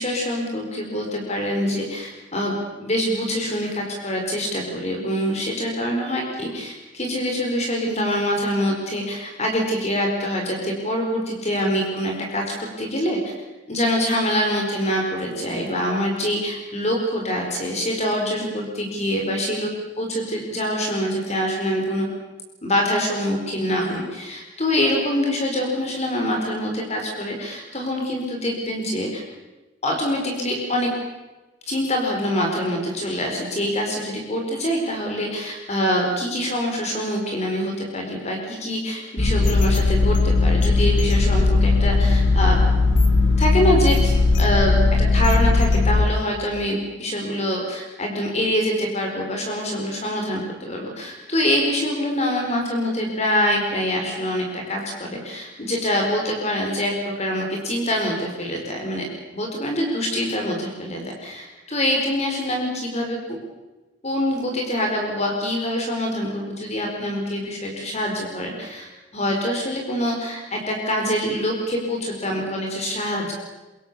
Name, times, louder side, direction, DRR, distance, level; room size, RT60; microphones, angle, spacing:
voice 1, 0.0-13.3 13.7-19.7 20.0-22.1 22.6-29.2 29.8-30.9 31.7-42.6 43.4-44.8 45.1-59.0 59.3-63.2 64.0-73.3, equal, 35° left, 1 dB, 4.6 m, -25 dB
sound 1, 39.2-46.1, left 3 dB, 70° left, 2.7 m, -18 dB
26.0 x 23.0 x 6.9 m, 1.1 s
head